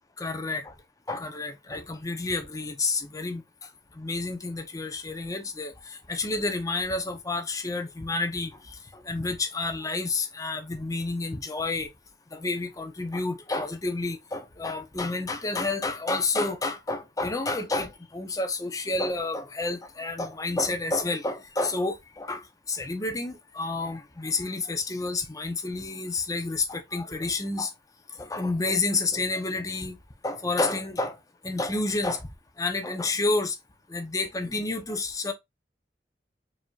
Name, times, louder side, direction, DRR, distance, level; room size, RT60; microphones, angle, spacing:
voice 1, 0.2-0.7 1.1-3.4 4.0-11.9 12.3-22.4 22.7-27.7 28.2-30.0 30.2-31.2 31.4-32.3 32.6-33.6 33.9-35.3, left 3 dB, 20° left, 0.6 m, -30 dB
4.7 x 2.7 x 2.3 m
head